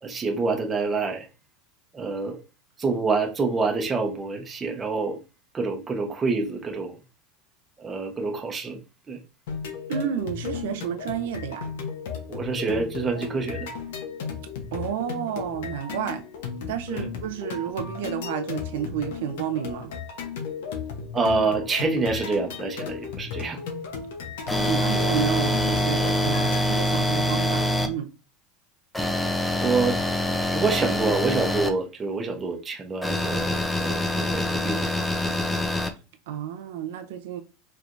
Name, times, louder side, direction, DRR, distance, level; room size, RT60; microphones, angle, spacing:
voice 1, 0.0-1.3 1.9-2.4 2.8-5.2 5.5-6.9 7.8-8.8 9.1-9.2 12.3-13.7 16.9-17.1 21.1-23.6 29.6-30.0 30.5-34.9 35.2-35.3, right 4 dB, 20° right, 0.9 m, -27 dB
sound 1, 9.5-26.6, left 6 dB, 85° left, 0.9 m, -35 dB
voice 2, 9.9-11.6 14.7-16.2 16.7-19.9 24.5-28.1 36.3-37.4, right 9 dB, 85° right, 0.6 m, -31 dB
sound 2, 24.5-27.9 28.9-31.7 33.0-35.9, left 1 dB, 5° left, 0.6 m, -25 dB
4.6 x 3.3 x 2.6 m
supercardioid pair, 135°, 0 cm